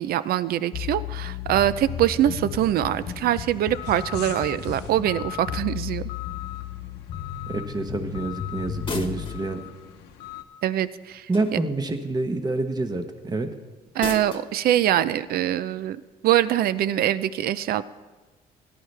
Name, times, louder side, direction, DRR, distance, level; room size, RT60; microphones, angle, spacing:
voice 1, 0.0-6.0 10.6-11.3 13.9-17.8, right 12 dB, 65° right, 15 dB, 0.5 m, -23 dB
sound 1, 0.7-9.4, left 9 dB, 50° left, 0.7 m, -34 dB
sound 2, 1.8-10.4, left 13 dB, 85° left, 0.9 m, -41 dB
voice 2, 7.5-9.6 11.3-13.5, right 2 dB, 25° right, 7 dB, 1.2 m, -27 dB
sound 3, 8.8-9.5 11.3-11.8 14.0-14.5, left 4 dB, 30° left, 1.3 m, -34 dB
17.5 x 11.0 x 3.4 m, 1.2 s
cardioid pair, 110°, 17 cm